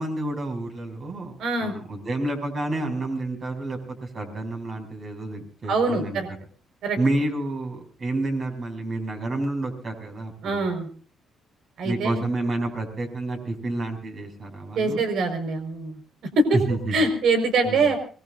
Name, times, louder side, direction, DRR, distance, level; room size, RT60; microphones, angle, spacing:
voice 1, 0.0-6.2 7.0-10.7 11.8-15.0 16.5-16.9 17.6-17.9, right 2 dB, 50° right, 4 dB, 6.9 m, -29 dB
voice 2, 1.4-1.7 5.7-6.3 6.8-7.0 10.4-10.9 11.8-12.2 14.8-16.0 16.3-16.6 16.9-18.0, right 3 dB, 75° right, 7 dB, 5.2 m, -23 dB
24.0 x 21.5 x 2.7 m, 0.40 s
cardioid pair, 90°, 0 cm